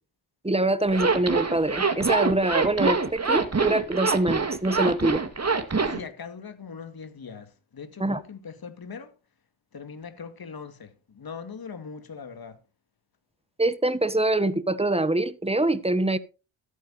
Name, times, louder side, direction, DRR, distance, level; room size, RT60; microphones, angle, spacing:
voice 1, 0.4-5.2 8.0-8.2 13.6-16.2, right 2 dB, 10° right, 1.3 m, -24 dB
Zipper (clothing), 0.9-6.0, right 4 dB, 30° right, 2.1 m, -25 dB
voice 2, 5.8-9.2 9.7-12.6, left 6 dB, 50° left, 2.2 m, -41 dB
13.5 x 9.3 x 4.2 m
cardioid pair, 60°, 48 cm